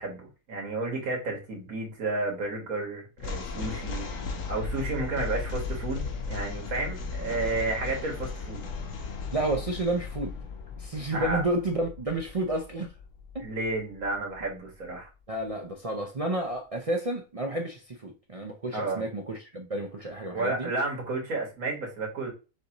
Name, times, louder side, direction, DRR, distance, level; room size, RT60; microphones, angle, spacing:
voice 1, 0.0-4.1 4.5-8.6 11.1-11.4 13.4-15.1 18.7-19.0 20.3-22.3, right 2 dB, 85° right, 2.1 m, -32 dB
sound 1, 3.2-14.5, left 4 dB, 70° left, 1.3 m, -36 dB
voice 2, 9.3-10.4 10.8-12.9 13.3-13.4 15.3-20.7, right 2 dB, 55° right, 0.4 m, -31 dB
6.5 x 2.6 x 3.0 m
omnidirectional pair, 1.5 m